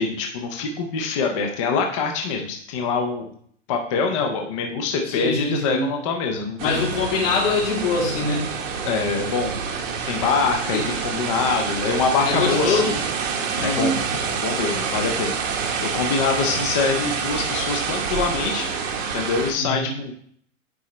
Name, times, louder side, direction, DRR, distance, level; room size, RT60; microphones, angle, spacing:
voice 1, 0.0-3.3 3.7-6.8 8.8-9.6 10.1-13.0 13.6-18.7 19.1-20.1, left 4 dB, 25° left, 2 dB, 0.5 m, -25 dB
voice 2, 5.0-5.9 6.6-8.5 10.7-10.8 12.2-12.9 13.6-13.9 19.6-19.9, left 3 dB, 80° left, -3 dB, 2.8 m, -23 dB
sound 1, 6.6-19.5, right 6 dB, 85° right, 1.4 m, -27 dB
9.7 x 4.2 x 3.1 m, 0.62 s
supercardioid pair, 170°, 38 cm